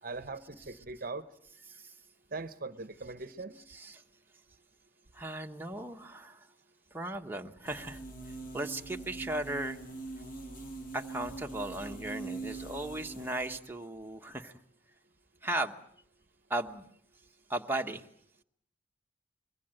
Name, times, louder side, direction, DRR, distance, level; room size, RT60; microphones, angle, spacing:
voice 1, 0.0-1.2 2.3-3.6, right 3 dB, 45° right, 12 dB, 0.9 m, -40 dB
voice 2, 3.7-4.0 5.1-6.5 6.9-9.8 10.9-14.6 15.4-15.8 16.5-16.9 17.5-18.1, right 1 dB, 10° right, 3 dB, 1.1 m, -37 dB
sound 1, 7.7-13.6, right 3 dB, 45° left, 6.3 m, -43 dB
25.0 x 22.5 x 7.8 m, 0.67 s
head